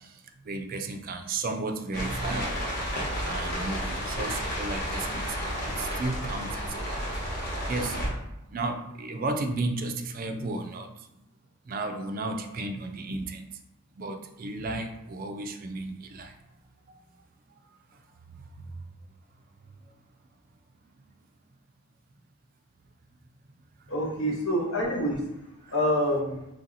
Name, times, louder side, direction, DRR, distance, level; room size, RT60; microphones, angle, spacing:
voice 1, 0.5-2.6 3.3-5.3 5.8-6.5 6.8-7.0 7.7-8.0 8.5-10.9 11.7-13.5 14.0-16.3 24.2-24.4, right 2 dB, 40° right, 6 dB, 0.4 m, -33 dB
sound 1, 1.9-8.1, equal, 45° left, 1.1 m, -32 dB
voice 2, 23.9-25.2 25.7-26.5, equal, 75° left, -1 dB, 0.9 m, -26 dB
3.3 x 2.7 x 3.9 m, 0.86 s
head